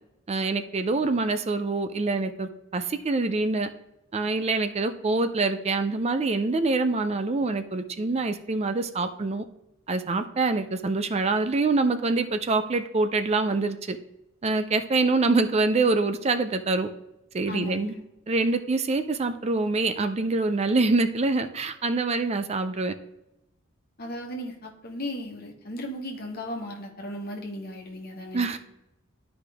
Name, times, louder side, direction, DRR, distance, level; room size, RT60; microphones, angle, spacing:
voice 1, 0.3-3.7 4.1-9.4 9.9-14.0 14.4-16.9 17.3-17.9 18.3-22.9 28.3-28.6, right 3 dB, 30° right, 10 dB, 0.4 m, -25 dB
voice 2, 17.5-18.0 24.0-28.5, equal, 50° left, 1 dB, 1.5 m, -36 dB
11.5 x 4.9 x 3.4 m, 0.90 s
head